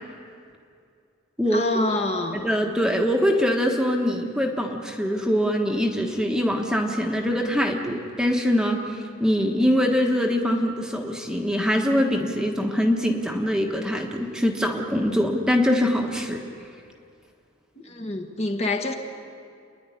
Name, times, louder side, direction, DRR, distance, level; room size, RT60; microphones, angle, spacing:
voice 1, 1.5-2.5 17.8-18.9, left 2 dB, 30° left, 4 dB, 1.5 m, -26 dB
voice 2, 2.4-16.4, equal, 5° right, 2 dB, 1.3 m, -23 dB
28.5 x 10.5 x 9.9 m, 2.4 s
head